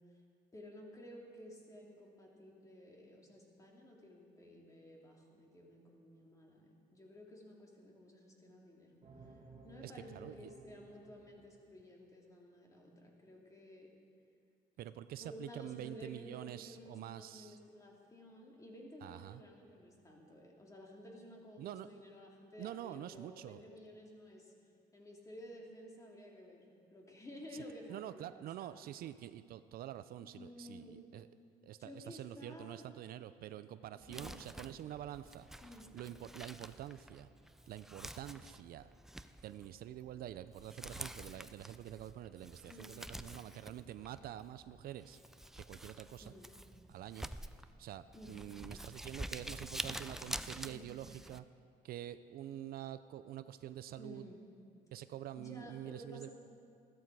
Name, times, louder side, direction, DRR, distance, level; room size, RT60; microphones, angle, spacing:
voice 1, 0.5-9.3 9.6-13.9 15.2-24.5 24.9-28.8 30.2-31.0 31.8-32.9 34.1-34.4 35.6-36.0 42.7-43.0 46.2-46.5 48.1-48.5 50.7-51.0 54.0-54.4 55.4-56.3, left 1 dB, 20° left, -1 dB, 2.6 m, -53 dB
sound 1, 9.0-11.8, right 3 dB, 40° right, 1.6 m, -57 dB
voice 2, 9.8-10.5 14.8-17.6 19.0-19.4 21.6-21.9 22.6-23.6 27.5-27.6 27.9-31.3 31.6-35.5 35.9-37.3 37.7-38.9 39.4-45.2 45.6-46.3 46.9-47.3 47.8-51.4 51.8-54.3 54.9-56.3, right 12 dB, 60° right, 13 dB, 0.5 m, -47 dB
Crumpling crinkling, 34.0-51.4, right 1 dB, ahead, 0.4 m, -48 dB
14.0 x 13.5 x 4.7 m, 2.3 s
cardioid pair, 110°, 17 cm